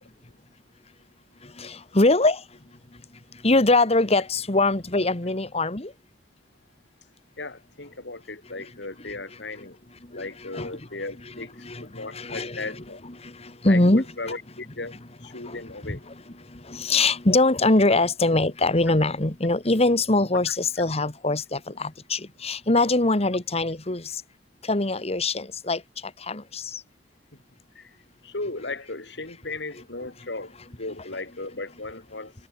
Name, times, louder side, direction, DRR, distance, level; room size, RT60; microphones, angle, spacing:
voice 1, 1.4-2.4 3.3-5.9 10.0-10.3 10.5-10.7 11.6-12.7 13.2-14.0 15.3-15.6 15.9-16.0 16.4-24.2 24.6-26.8, left 2 dB, 35° left, 1.9 m, -23 dB
voice 2, 7.4-9.8 10.1-13.0 13.7-14.9 15.2-16.0 27.3-27.4 27.7-28.0 28.2-32.3, left 2 dB, 70° left, 2.9 m, -36 dB
head